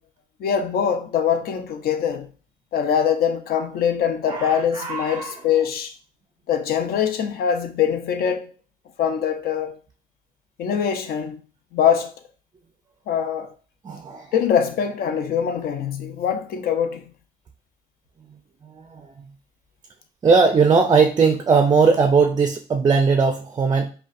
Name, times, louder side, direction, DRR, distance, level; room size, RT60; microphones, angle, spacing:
voice 1, 0.4-2.3 2.7-6.0 6.5-8.5 9.0-9.8 10.6-11.4 11.7-12.1 13.1-13.5 14.3-17.1, left 8 dB, 65° left, 0.6 m, -23 dB
voice 2, 4.3-5.4 13.8-14.4 18.6-19.3 20.2-23.9, right 5 dB, 25° right, 0.4 m, -19 dB
5.0 x 2.2 x 2.5 m
cardioid pair, 110°, 17 cm